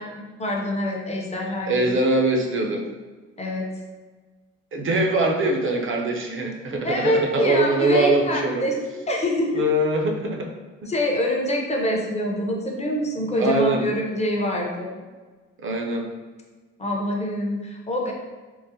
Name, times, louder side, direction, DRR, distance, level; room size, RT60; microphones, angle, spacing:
voice 1, 0.0-1.9 3.4-3.7 6.8-9.6 10.9-15.0 16.8-18.1, left 1 dB, 20° left, 0 dB, 0.6 m, -25 dB
voice 2, 1.7-2.8 4.7-8.7 9.5-10.5 13.3-13.9 15.6-16.1, right 2 dB, 45° right, 2 dB, 0.6 m, -22 dB
3.8 x 2.0 x 2.7 m, 1.3 s
cardioid pair, 90°, 30 cm